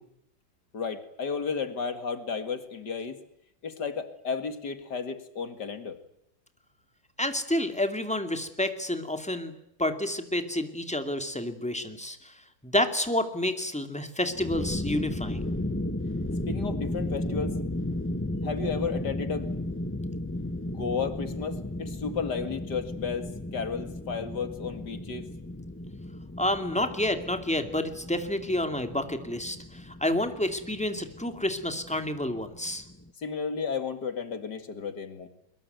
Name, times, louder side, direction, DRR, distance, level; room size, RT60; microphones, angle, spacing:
voice 1, 0.7-3.2 3.6-6.0 16.5-17.6 18.4-19.5 20.6-25.3 33.2-35.3, left 5 dB, 60° left, 9 dB, 2.6 m, -33 dB
voice 2, 7.2-9.5 9.8-15.5 26.4-32.8, left 1 dB, 5° left, 7 dB, 2.4 m, -29 dB
sound 1, 14.3-33.1, left 1 dB, 20° left, 0.3 m, -35 dB
23.0 x 21.5 x 9.3 m, 0.79 s
omnidirectional pair, 2.1 m